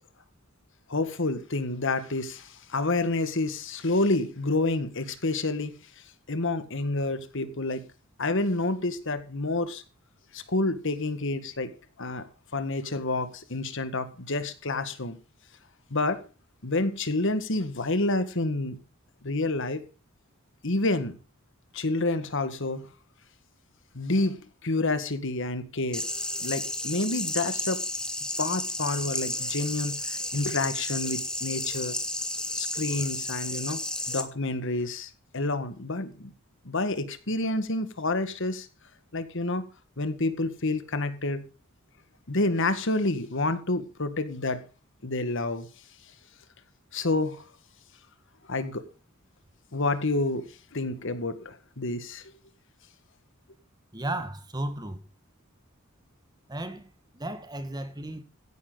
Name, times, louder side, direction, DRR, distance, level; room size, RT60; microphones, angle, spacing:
voice 1, 0.9-5.8 6.3-7.9 8.2-9.8 10.3-11.7 12.0-15.2 15.9-16.2 16.6-18.8 19.2-19.8 20.6-21.2 21.7-22.9 23.9-26.0 26.4-27.8 28.4-32.0 32.5-33.8 34.1-36.3 36.6-38.7 39.1-39.6 40.0-41.5 42.3-44.7 45.0-45.7 46.9-47.4 48.5-48.8 49.7-52.2, left 2 dB, 60° left, 1.7 m, -29 dB
sound 1, 25.9-34.2, left 1 dB, 5° left, 1.6 m, -32 dB
voice 2, 53.9-55.0 56.5-58.2, right 1 dB, 20° right, 1.6 m, -34 dB
15.5 x 10.5 x 4.0 m
head